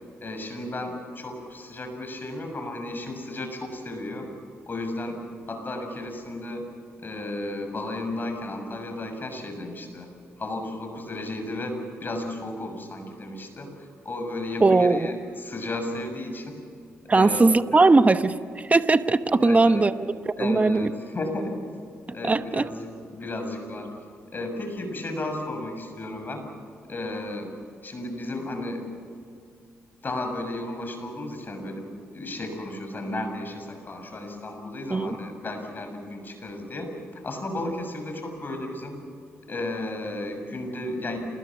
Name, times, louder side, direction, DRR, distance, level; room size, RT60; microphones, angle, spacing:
voice 1, 0.2-4.3 4.7-5.2 5.5-6.6 7.0-10.1 10.4-16.5 17.1-17.8 19.4-19.8 20.4-21.5 22.1-23.9 24.3-26.4 26.9-27.5 27.8-28.9 30.0-36.9 37.2-39.0 39.5-41.2, left 1 dB, 40° left, 5 dB, 6.8 m, -33 dB
voice 2, 14.6-15.1 17.1-19.9 20.3-20.9 22.2-22.7 34.9-35.2, right 3 dB, 30° right, 11 dB, 1.0 m, -19 dB
28.0 x 20.5 x 7.3 m, 2.3 s
supercardioid pair, 60°, 5 cm